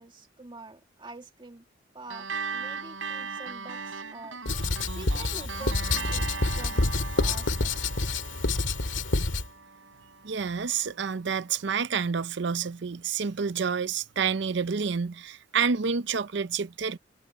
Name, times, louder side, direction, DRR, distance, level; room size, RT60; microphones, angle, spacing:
voice 1, 0.0-1.7 1.9-7.9, right 2 dB, 25° right, 2.0 m, -46 dB
sound 1, 2.1-10.9, right 5 dB, 85° right, 6.7 m, -39 dB
Writing, 4.4-9.5, left 3 dB, 80° left, 1.9 m, -27 dB
voice 2, 10.2-17.0, right 6 dB, 65° right, 0.6 m, -29 dB
head